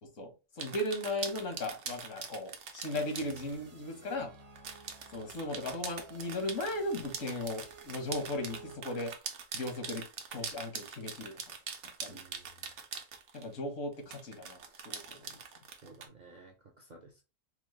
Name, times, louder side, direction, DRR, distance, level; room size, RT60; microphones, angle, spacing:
voice 1, 0.0-4.3 5.1-9.1 9.5-10.0 10.3-11.4 12.0-12.2 13.3-14.6 14.8-15.4, left 1 dB, 75° left, 1.4 m, -37 dB
sound 1, 0.6-3.6 4.6-13.5 14.1-16.1, right 6 dB, 70° right, 1.0 m, -43 dB
sound 2, 2.9-8.8, right 4 dB, 90° right, 1.4 m, -54 dB
voice 2, 12.1-12.7 15.8-17.2, right 3 dB, 50° right, 0.5 m, -55 dB
4.5 x 2.0 x 3.0 m
omnidirectional pair, 1.3 m